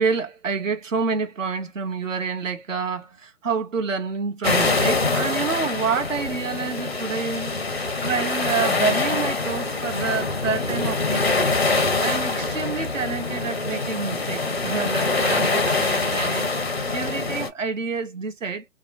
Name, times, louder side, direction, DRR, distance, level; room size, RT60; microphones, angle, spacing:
voice 1, 0.0-18.6, right 5 dB, 50° right, 0.8 m, -28 dB
sound 1, 4.4-17.5, left 3 dB, 40° left, 0.5 m, -24 dB
2.8 x 2.1 x 2.4 m
hypercardioid pair, 165°, 49 cm